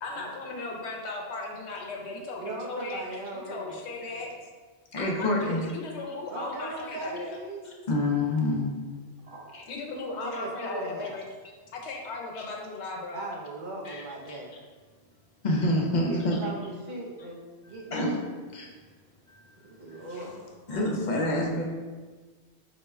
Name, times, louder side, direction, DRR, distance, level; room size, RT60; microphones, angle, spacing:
voice 1, 0.0-3.1 3.3-4.3 5.0-7.4 9.7-11.2 11.7-13.3, left 3 dB, 80° left, 0 dB, 0.9 m, -36 dB
voice 2, 2.4-4.3 6.3-7.9 9.2-9.7 10.2-11.2 13.1-14.5 16.0-18.4 19.6-20.4, right 2 dB, 50° right, -1 dB, 0.7 m, -39 dB
voice 3, 4.9-5.7 7.9-8.7 9.5-9.6 13.9-14.0 14.3-14.4 15.4-16.4 17.9-18.1 18.5-18.7 19.3-19.4 19.9-20.2 20.7-21.6, left 1 dB, 50° left, -1 dB, 0.6 m, -27 dB
4.8 x 2.1 x 3.3 m, 1.4 s
omnidirectional pair, 1.1 m